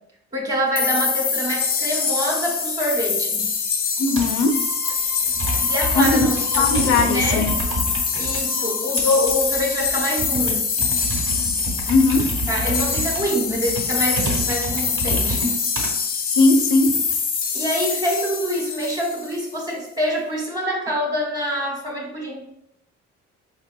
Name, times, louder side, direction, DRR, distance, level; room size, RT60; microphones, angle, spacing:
voice 1, 0.3-3.5 5.6-7.5 8.1-10.7 12.5-15.5 17.5-22.6, equal, 15° right, -1 dB, 1.1 m, -25 dB
sound 1, 0.7-19.4, left 5 dB, 30° left, 0.4 m, -24 dB
voice 2, 4.0-4.6 6.0-6.3 6.6-7.5 11.9-12.3 16.3-17.0, left 3 dB, 85° left, 6 dB, 0.5 m, -18 dB
Computer keyboard, 4.2-4.5 5.2-8.4 9.0-15.9 16.6-17.1, right 1 dB, 45° right, 1.1 m, -29 dB
sound 2, 4.5-10.0 10.4-10.5, equal, 30° right, 0.7 m, -38 dB
4.2 x 2.9 x 2.2 m, 0.80 s
cardioid pair, 90°, 30 cm